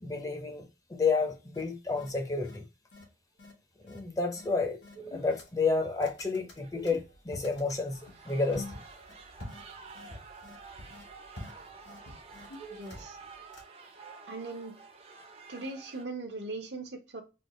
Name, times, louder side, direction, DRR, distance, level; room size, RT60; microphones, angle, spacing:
voice 1, 0.0-2.6 3.8-4.8 5.1-8.8, left 4 dB, 20° left, 0.6 m, -30 dB
sound 1, 1.5-1.6 2.0-2.1 2.4-2.6 2.9-3.0 3.4-3.5 3.9-4.0 4.3-4.5 4.8-5.7 6.0-7.8 8.5-8.8 9.1-9.2 9.5-9.6 9.9-10.1 10.4-10.6 10.9-11.0 11.4-11.5 11.9-12.0 12.3-13.2 13.5-13.6, left 1 dB, 90° left, 1.2 m, -47 dB
sound 2, 3.8-4.0 4.3-4.4 5.0-5.4 6.5-7.1 7.7-16.0, right 4 dB, 35° right, 0.5 m, -50 dB
sound 3, 6.7-13.5, left 1 dB, 70° left, 1.2 m, -50 dB
voice 2, 12.7-13.2 14.3-14.7 15.5-17.2, right 3 dB, 75° right, 0.8 m, -39 dB
3.3 x 2.4 x 2.9 m
head